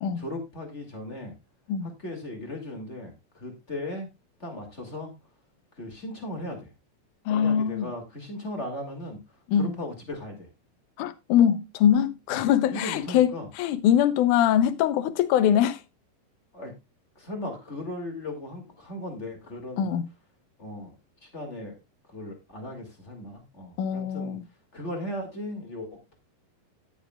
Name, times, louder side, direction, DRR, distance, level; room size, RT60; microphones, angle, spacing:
voice 1, 0.2-1.3 1.8-4.1 4.4-5.1 5.8-6.7 7.3-9.2 9.6-10.5 12.3-12.4 12.7-13.5 16.5-16.7 17.2-19.9 20.6-20.9 21.3-21.8 22.1-24.4 24.7-26.2, left 1 dB, 20° left, 2.2 m, -37 dB
voice 2, 7.3-7.9 9.5-9.7 11.0-15.8 19.8-20.0 23.8-24.4, left 9 dB, 70° left, 2.1 m, -23 dB
17.5 x 6.2 x 2.3 m
omnidirectional pair, 4.0 m